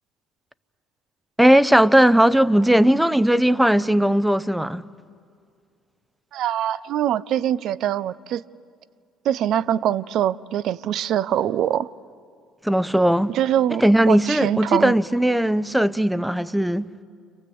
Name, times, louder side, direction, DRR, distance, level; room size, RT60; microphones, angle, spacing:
voice 1, 1.4-4.8 12.6-13.3 13.8-16.8, right 1 dB, 5° right, 0.8 m, -18 dB
voice 2, 6.3-8.4 9.2-11.9 13.3-14.9, right 11 dB, 65° right, 0.6 m, -23 dB
29.5 x 26.0 x 7.8 m
supercardioid pair, 70°, 0 cm